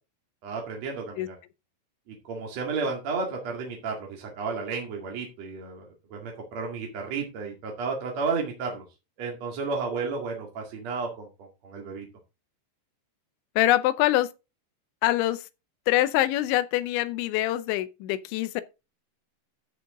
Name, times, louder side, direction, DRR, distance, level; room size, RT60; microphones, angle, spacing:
voice 1, 0.4-1.3 2.1-8.8 9.2-12.0, right 4 dB, 45° right, 2.4 m, -32 dB
voice 2, 13.6-14.3 15.0-15.5 15.9-18.6, left 15 dB, 80° left, 2.8 m, -24 dB
13.5 x 6.9 x 3.8 m
omnidirectional pair, 5.8 m